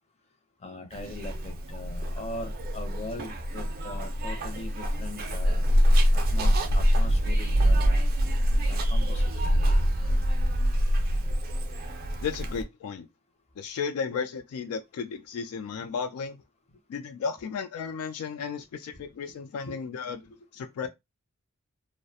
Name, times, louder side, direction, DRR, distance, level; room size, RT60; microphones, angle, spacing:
voice 1, 0.6-5.6 6.1-8.1 8.7-9.6 19.7-19.8, left 2 dB, 30° left, 0.5 m, -41 dB
Zipper (clothing), 0.9-12.6, equal, 40° right, 0.4 m, -25 dB
voice 2, 12.2-13.1 13.6-16.4 16.9-20.9, left 6 dB, 75° left, 0.3 m, -34 dB
2.3 x 2.1 x 2.7 m
head